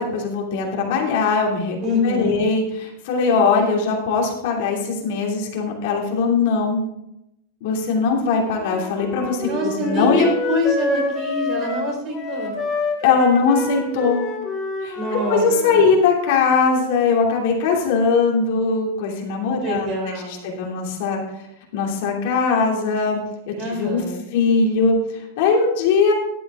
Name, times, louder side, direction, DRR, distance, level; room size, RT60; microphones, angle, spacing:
voice 1, 0.0-1.8 2.0-6.9 7.6-10.3 13.0-14.2 14.8-15.0 15.3-19.9 20.2-21.2 21.7-23.2 23.5-24.0 24.3-26.1, left 4 dB, 60° left, 0 dB, 2.8 m, -20 dB
voice 2, 1.8-2.4 9.4-12.6 15.0-15.9 19.6-20.5 23.6-24.2, left 1 dB, 40° right, 1 dB, 4.2 m, -25 dB
Wind instrument woodwind instrument, 8.5-15.8, left 3 dB, 25° left, 2.5 m, -28 dB
12.5 x 8.8 x 3.7 m, 0.83 s
supercardioid pair, 140°, 0 cm